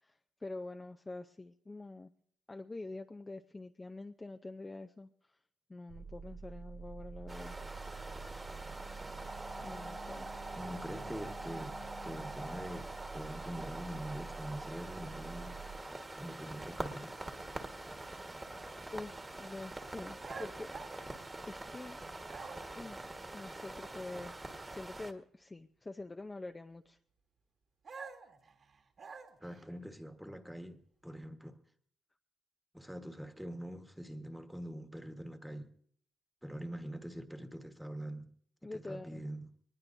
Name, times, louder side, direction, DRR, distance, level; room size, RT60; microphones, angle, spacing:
voice 1, 0.0-2.1 2.5-5.3 5.7-7.6 9.6-10.3 18.9-20.7 21.0-22.0 22.7-24.3 24.7-27.0 38.6-39.2, left 2 dB, 20° left, 0.5 m, -46 dB
sound 1, 5.9-15.8, right 5 dB, 80° right, 3.8 m, -48 dB
sound 2, 7.3-25.1, right 2 dB, 20° right, 1.4 m, -45 dB
voice 2, 10.5-15.6 16.2-17.2 29.4-31.6 32.7-35.7 36.4-38.3 38.6-39.5, equal, ahead, 1.4 m, -44 dB
sound 3, 20.2-21.8 22.2-22.9 27.8-29.6, right 5 dB, 50° right, 1.8 m, -48 dB
22.5 x 20.0 x 2.6 m
cardioid pair, 90°, 0 cm